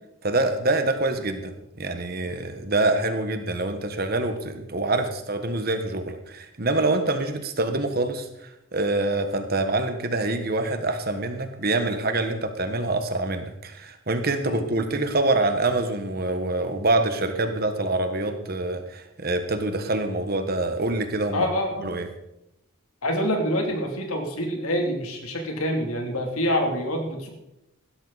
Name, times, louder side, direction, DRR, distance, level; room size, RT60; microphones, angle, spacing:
voice 1, 0.2-21.5 21.8-22.1, right 2 dB, 45° right, 7 dB, 1.4 m, -25 dB
voice 2, 21.3-21.9 23.0-27.3, equal, 90° left, 3 dB, 3.0 m, -26 dB
16.0 x 13.0 x 4.2 m, 0.86 s
head